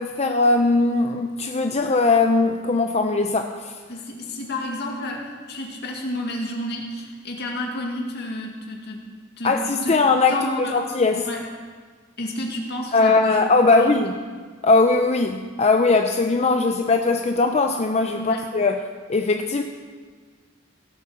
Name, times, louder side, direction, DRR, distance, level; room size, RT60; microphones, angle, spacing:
voice 1, 0.0-3.7 9.4-10.4 10.7-11.2 12.9-14.1 14.6-18.8 19.1-19.6, left 3 dB, 35° left, 5 dB, 0.6 m, -20 dB
voice 2, 3.9-9.0 9.4-9.9 10.3-10.8 11.1-11.4 12.2-13.4 13.7-13.9 18.2-18.4, left 1 dB, 55° left, 1 dB, 2.2 m, -30 dB
16.5 x 8.5 x 6.2 m, 1.5 s
head